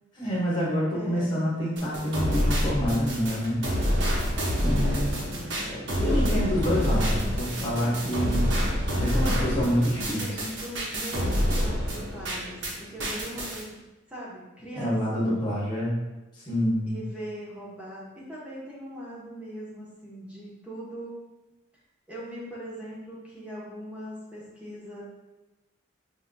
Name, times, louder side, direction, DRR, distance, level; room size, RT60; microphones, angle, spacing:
voice 1, 0.2-3.6 4.6-5.3 5.7-8.5 9.0-10.3 14.8-16.0 16.3-17.0, equal, 25° left, -7 dB, 1.2 m, -27 dB
voice 2, 0.9-1.5 4.3-5.1 9.0-9.6 10.2-13.7 14.1-15.4 16.8-21.1 22.1-25.0, equal, 5° right, -7 dB, 0.8 m, -40 dB
sound 1, 1.8-12.7 13.0-13.6, equal, 75° right, 0.9 m, -27 dB
5.5 x 2.7 x 2.6 m, 1.0 s
head